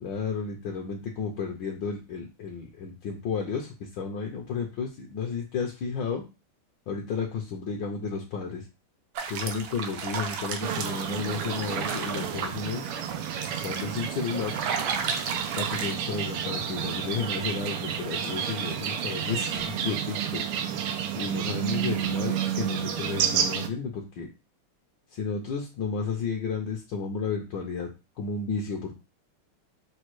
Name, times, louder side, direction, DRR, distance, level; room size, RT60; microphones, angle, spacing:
voice 1, 0.0-6.2 6.9-8.6 9.3-12.8 13.6-14.6 15.6-20.4 21.1-24.3 25.1-27.9 28.2-28.9, left 5 dB, 70° left, 1 dB, 1.2 m, -32 dB
sound 1, 9.2-16.0, right 6 dB, 75° right, 1.4 m, -34 dB
sound 2, 10.6-23.7, right 9 dB, 90° right, 1.6 m, -31 dB
6.5 x 2.2 x 3.0 m, 0.28 s
omnidirectional pair, 2.4 m